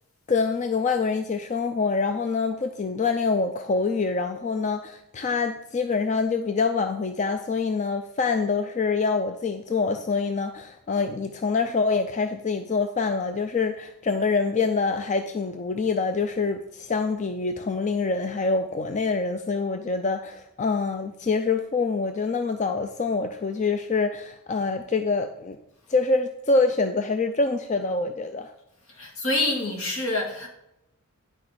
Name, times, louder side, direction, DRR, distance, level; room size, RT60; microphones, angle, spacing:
voice 1, 0.3-25.6 25.9-28.5, left 4 dB, 35° left, 7 dB, 0.4 m, -25 dB
voice 2, 29.0-30.5, left 2 dB, 65° left, 1 dB, 2.1 m, -26 dB
9.7 x 6.0 x 5.0 m, 0.83 s
head